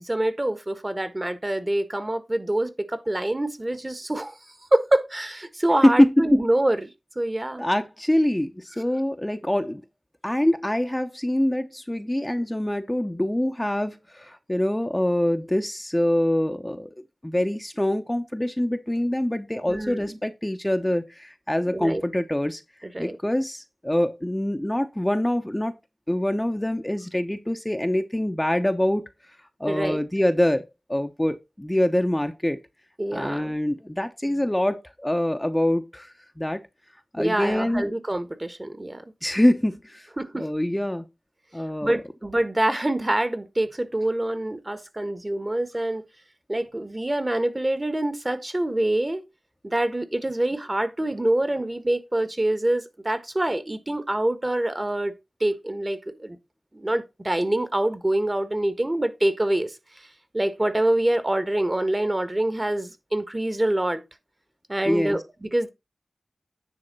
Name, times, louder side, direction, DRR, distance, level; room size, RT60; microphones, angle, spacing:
voice 1, 0.0-4.3 4.7-6.9 7.1-7.7 19.7-20.2 21.7-22.0 22.8-23.2 29.7-30.0 33.0-33.6 37.2-39.0 40.2-40.5 41.8-46.0 46.5-49.2 49.6-55.1 55.4-56.4 56.7-59.7 60.3-64.0 64.7-65.7, right 1 dB, 30° right, 1.4 m, -25 dB
voice 2, 5.8-6.4 7.6-9.8 10.2-16.9 17.2-22.6 23.0-25.7 26.1-29.1 29.6-30.6 30.9-32.6 33.1-36.6 37.1-37.9 39.2-40.1 40.3-41.1 41.5-41.9 64.9-65.2, left 1 dB, 15° left, 0.8 m, -24 dB
9.9 x 3.5 x 5.4 m
cardioid pair, 45°, 0 cm